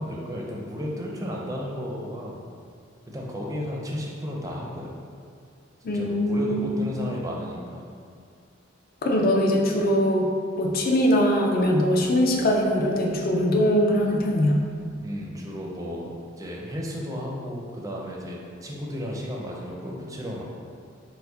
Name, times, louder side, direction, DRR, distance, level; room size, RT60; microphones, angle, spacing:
voice 1, 0.0-2.4 3.1-5.0 5.9-7.9 15.0-20.4, equal, 15° right, -2 dB, 0.5 m, -33 dB
voice 2, 5.8-6.9 9.0-10.3 10.6-14.6, equal, 50° left, 0 dB, 0.5 m, -22 dB
4.6 x 2.1 x 3.8 m, 2.2 s
head